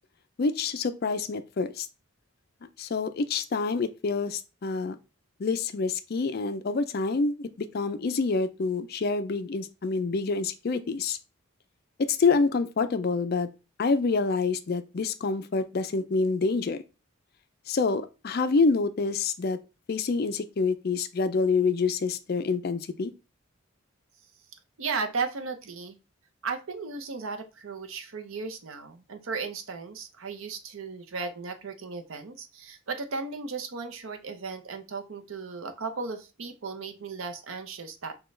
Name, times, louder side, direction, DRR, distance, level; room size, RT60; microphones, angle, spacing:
voice 1, 0.4-1.9 2.8-5.0 5.4-11.2 12.0-13.5 13.8-16.8 17.7-19.6 19.9-23.1, left 4 dB, 45° left, 0.4 m, -27 dB
voice 2, 24.8-26.0 26.4-38.2, right 4 dB, 70° right, 0.6 m, -35 dB
6.3 x 2.3 x 3.2 m
head